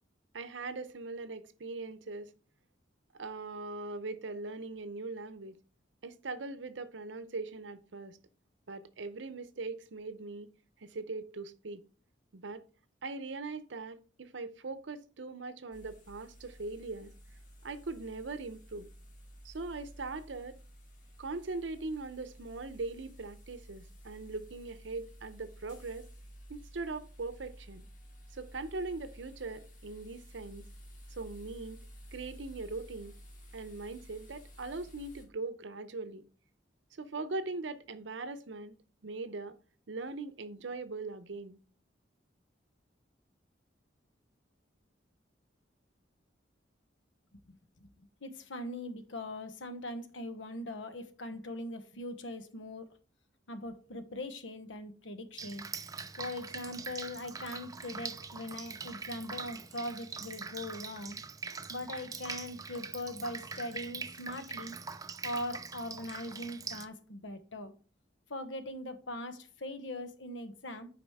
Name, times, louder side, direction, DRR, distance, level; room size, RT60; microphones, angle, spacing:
voice 1, 0.3-2.3 3.1-5.6 6.0-8.2 8.7-10.5 10.8-11.8 12.3-12.6 13.0-17.1 17.6-18.9 19.4-20.6 21.2-26.1 26.5-27.9 28.3-30.7 31.1-31.8 32.1-33.2 33.5-36.2 36.9-38.7 39.0-39.6 39.9-41.6, right 3 dB, 80° right, 0.7 m, -40 dB
sound 1, 15.7-35.2, equal, 45° left, 1.8 m, -53 dB
voice 2, 48.2-52.9 53.5-55.6 56.2-61.2 61.7-64.8 65.2-67.7 68.3-70.9, left 1 dB, 90° left, 1.0 m, -41 dB
Drip, 55.4-66.9, right 5 dB, 20° right, 0.4 m, -43 dB
8.6 x 4.9 x 3.5 m
head